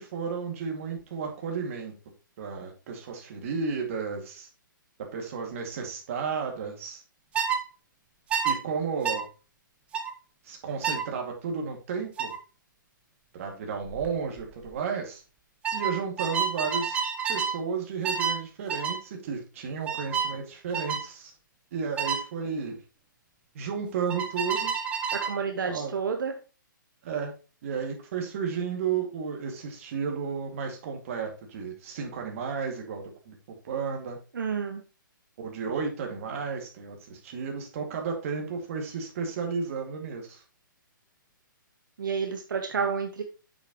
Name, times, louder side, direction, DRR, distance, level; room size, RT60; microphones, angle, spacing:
voice 1, 0.0-1.9 2.4-4.5 5.1-7.0 8.4-9.3 10.4-12.3 13.3-15.2 15.7-17.0 17.3-21.3 21.7-22.8 23.5-24.7 25.7-25.9 27.0-27.3 27.6-33.3 33.6-34.2 35.4-40.4, right 6 dB, 40° right, 2 dB, 2.3 m, -33 dB
sound 1, 7.3-7.6 8.3-8.6 9.0-9.2 9.9-10.1 10.8-11.1 12.2-12.4 13.8-14.1 14.4-14.7 15.6-17.6 18.0-18.4 18.7-19.0 19.9-20.3 20.7-21.0 22.0-22.2 24.1-25.4, right 6 dB, 10° right, 0.7 m, -29 dB
voice 2, 25.1-26.3 34.3-34.8 42.0-43.2, right 6 dB, 70° right, 5 dB, 1.2 m, -30 dB
7.9 x 6.8 x 3.0 m, 0.32 s
hypercardioid pair, 160°, 11 cm